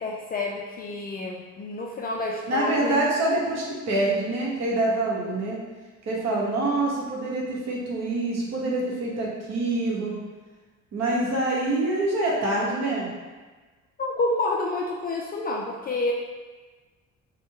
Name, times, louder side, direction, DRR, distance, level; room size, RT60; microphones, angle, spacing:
voice 1, 0.0-2.9 11.3-11.4 14.0-16.1, left 2 dB, 25° left, -1 dB, 0.4 m, -29 dB
voice 2, 2.5-5.6 6.1-10.1 10.9-13.1, right 2 dB, 45° right, -3 dB, 1.2 m, -25 dB
4.2 x 2.3 x 4.6 m, 1.3 s
figure-of-eight pair, 50°, 38 cm